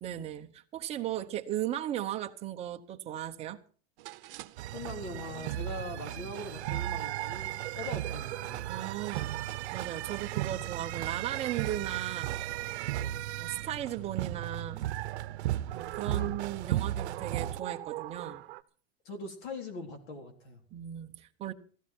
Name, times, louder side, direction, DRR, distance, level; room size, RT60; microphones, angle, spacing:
voice 1, 0.0-3.6 8.7-9.3 9.7-12.4 13.4-14.9 15.7-18.4 20.7-21.5, right 12 dB, 20° right, 0.9 m, -36 dB
sound 1, 4.0-18.6, right 17 dB, 60° right, 1.0 m, -45 dB
sound 2, 4.6-17.6, right 13 dB, 90° right, 0.8 m, -35 dB
voice 2, 4.7-8.8 10.6-10.7 13.0-13.1 16.0-16.3 19.1-20.6, left 2 dB, 50° left, 3.8 m, -42 dB
16.5 x 15.0 x 4.5 m
supercardioid pair, 170°, 32 cm